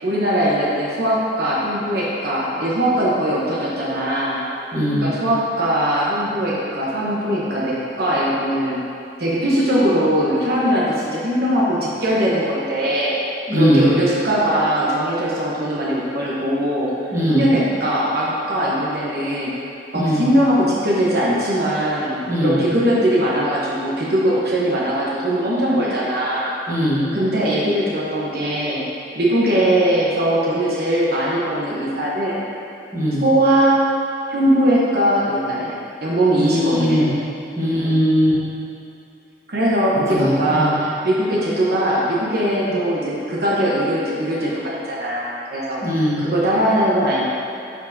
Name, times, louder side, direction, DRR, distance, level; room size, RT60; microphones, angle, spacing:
voice 1, 0.0-4.4 5.0-8.8 9.2-13.1 13.5-19.5 19.9-26.5 27.1-28.8 29.1-32.4 33.2-33.8 34.3-37.1 37.7-37.9 39.5-45.8 46.2-47.2, right 1 dB, 65° right, -6 dB, 1.1 m, -20 dB
voice 2, 4.7-5.1 13.5-13.9 17.1-17.5 19.9-20.2 22.3-22.6 26.7-27.0 32.9-33.2 36.4-37.1 37.6-38.3 40.1-40.7 45.8-46.2, equal, 20° right, -9 dB, 1.5 m, -19 dB
11.0 x 4.6 x 2.8 m, 2.6 s
head